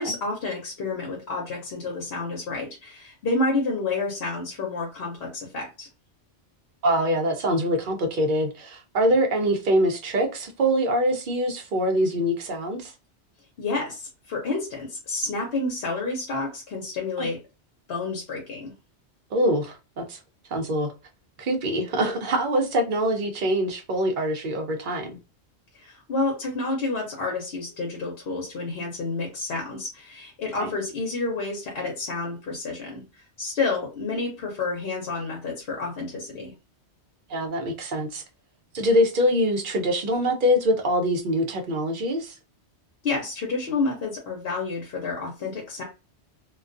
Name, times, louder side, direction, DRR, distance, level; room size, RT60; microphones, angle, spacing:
voice 1, 0.0-5.9 13.6-17.4 17.9-18.7 25.7-36.5 43.0-45.8, left 3 dB, 65° left, 0.8 m, -29 dB
voice 2, 6.8-12.9 17.2-17.3 19.3-20.2 20.5-20.9 21.4-25.2 30.6-30.7 37.3-38.2 38.7-42.4, equal, 55° right, 0.7 m, -24 dB
2.3 x 2.2 x 2.4 m
omnidirectional pair, 1.1 m